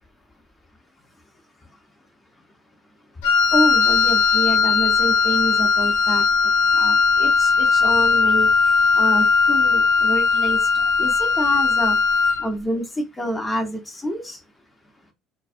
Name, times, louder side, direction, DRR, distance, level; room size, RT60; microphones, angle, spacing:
Wind instrument woodwind instrument, 3.2-12.5, left 5 dB, 80° left, 0.6 m, -18 dB
voice 1, 3.5-8.5 8.9-12.0 12.4-14.4, equal, 20° left, 1.1 m, -28 dB
2.5 x 2.3 x 2.5 m
hypercardioid pair, 65°, 0 cm